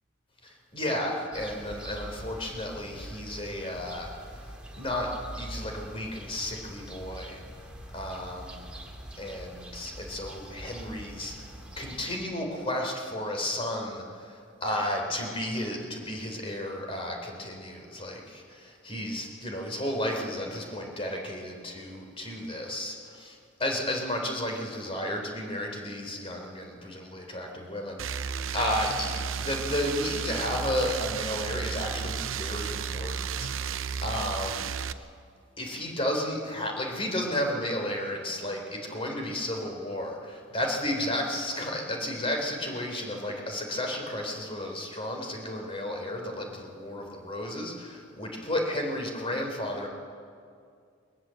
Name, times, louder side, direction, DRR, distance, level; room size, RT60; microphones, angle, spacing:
voice 1, 0.4-4.5 4.8-5.1 5.4-7.4 7.9-8.7 9.2-11.5 11.8-35.1 35.6-49.9, left 1 dB, 30° left, 2 dB, 3.7 m, -33 dB
Foley Street Village Birds Distance Dog, 1.3-12.1, right 1 dB, 5° right, 2.4 m, -44 dB
sound 1, 28.0-34.9, right 7 dB, 80° right, 0.7 m, -33 dB
21.0 x 20.5 x 7.7 m, 2.3 s
head